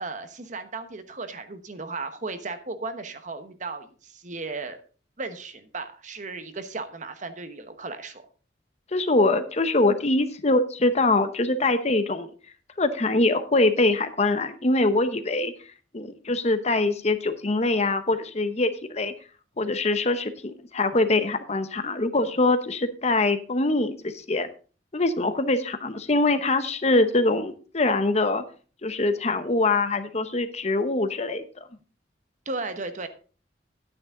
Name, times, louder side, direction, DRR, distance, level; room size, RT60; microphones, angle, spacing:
voice 1, 0.0-4.8 5.2-8.3 32.5-33.1, right 3 dB, 45° right, 9 dB, 1.1 m, -35 dB
voice 2, 8.9-12.3 12.8-15.5 15.9-19.1 19.6-24.5 24.9-28.4 28.8-31.4, left 2 dB, 40° left, 10 dB, 0.9 m, -23 dB
11.0 x 9.6 x 3.8 m, 0.38 s
head